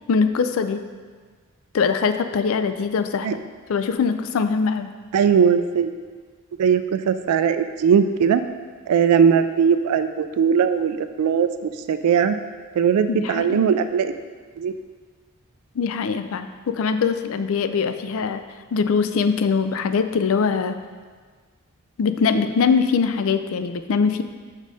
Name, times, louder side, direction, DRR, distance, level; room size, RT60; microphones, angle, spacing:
voice 1, 0.1-0.8 1.7-3.3 3.7-4.9 13.1-13.6 15.8-18.4 18.7-20.8 22.0-24.2, left 5 dB, 65° left, 10 dB, 0.4 m, -22 dB
voice 2, 5.1-5.9 6.6-8.4 8.9-12.4 12.8-14.1 14.6-14.7, right 7 dB, 90° right, 10 dB, 0.3 m, -19 dB
6.3 x 5.1 x 4.1 m, 1.5 s
head